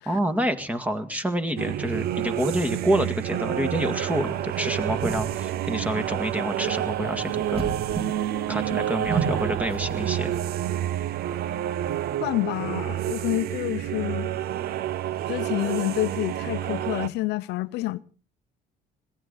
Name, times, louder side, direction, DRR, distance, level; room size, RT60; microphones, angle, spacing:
voice 1, 0.1-7.7 8.5-10.3, equal, 10° right, 1.9 m, -28 dB
sound 1, 1.6-17.1, right 12 dB, 65° right, 0.8 m, -29 dB
sound 2, 4.1-10.4, right 4 dB, 35° right, 4.9 m, -34 dB
voice 2, 12.2-14.4 15.3-18.0, left 17 dB, 85° left, 0.7 m, -28 dB
21.5 x 16.5 x 4.0 m
cardioid pair, 110°, 17 cm